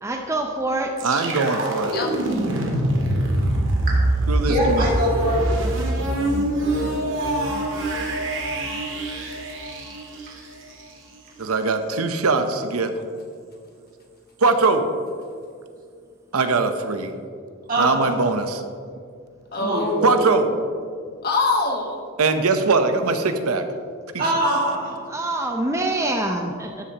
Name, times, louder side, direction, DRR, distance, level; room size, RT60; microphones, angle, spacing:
voice 1, 0.0-1.0 25.0-26.8, right 2 dB, 15° right, 3 dB, 0.5 m, -25 dB
sound 1, 1.0-10.8, right 1 dB, 60° right, 1.8 m, -24 dB
voice 2, 1.0-1.9 4.3-4.8 11.4-12.9 14.4-14.9 16.3-17.1 17.8-18.6 20.0-20.5 22.2-23.7, right 3 dB, 85° right, 8 dB, 0.8 m, -21 dB
voice 3, 1.9-2.4 19.5-20.5 21.2-22.0, left 2 dB, 45° left, 2 dB, 1.3 m, -24 dB
voice 4, 3.9-5.5 17.7-18.1 19.5-20.1 24.2-25.0, right 1 dB, 40° right, -5 dB, 2.2 m, -23 dB
12.5 x 10.0 x 2.9 m, 2.2 s
head